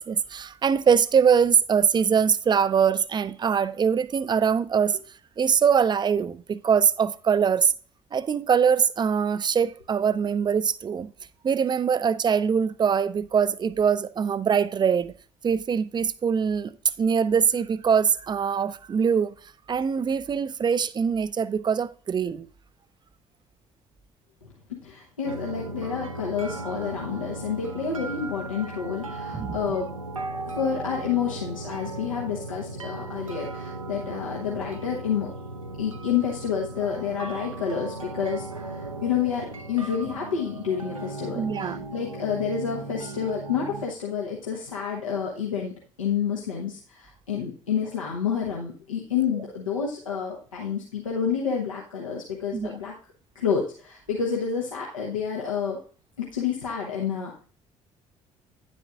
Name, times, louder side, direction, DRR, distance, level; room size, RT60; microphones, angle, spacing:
voice 1, 0.0-5.0 5.4-7.7 8.1-11.1 11.4-15.1 15.4-19.3 19.7-22.5 29.3-29.6 41.3-41.9 52.5-52.7, right 7 dB, 25° right, 0.5 m, -23 dB
voice 2, 24.8-29.9 30.5-35.3 35.8-45.7 46.0-52.9 53.3-55.8 56.2-57.4, left 7 dB, 80° left, 1.0 m, -29 dB
sound 1, 25.2-43.9, right 2 dB, 85° right, 0.6 m, -37 dB
9.9 x 7.6 x 2.4 m
figure-of-eight pair, 50°, 17 cm